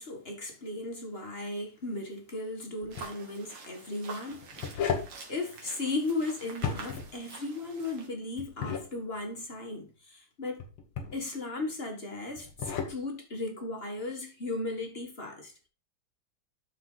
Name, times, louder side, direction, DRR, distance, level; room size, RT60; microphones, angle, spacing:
voice 1, 0.0-5.0 5.3-10.6 11.1-15.7, left 2 dB, 30° left, 1.6 m, -36 dB
sound 1, 2.8-3.1 4.3-5.2 6.5-7.1 8.4-8.9 10.6-11.2 12.4-13.0, left 6 dB, 80° left, 2.2 m, -34 dB
sound 2, 2.9-8.1, right 4 dB, 75° right, 2.6 m, -47 dB
12.5 x 4.6 x 3.9 m
omnidirectional pair, 2.4 m